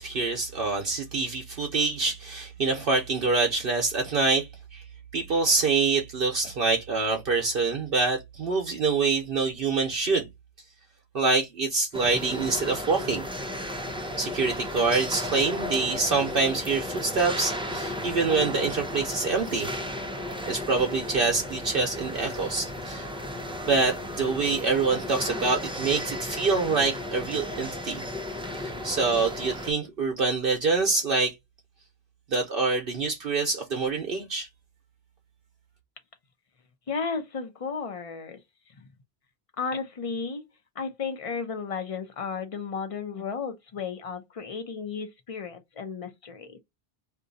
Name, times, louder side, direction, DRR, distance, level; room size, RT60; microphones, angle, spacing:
voice 1, 0.0-4.8 5.1-10.3 11.1-13.2 14.2-19.7 20.5-23.1 23.6-28.1 28.6-31.3 32.3-34.5, right 4 dB, 65° right, 0.9 m, -26 dB
sound 1, 11.9-29.7, left 1 dB, 10° right, 0.3 m, -34 dB
voice 2, 36.9-38.4 38.8-38.9 39.6-40.4 40.8-46.6, left 5 dB, 40° left, 0.6 m, -34 dB
2.6 x 2.3 x 3.8 m
omnidirectional pair, 1.1 m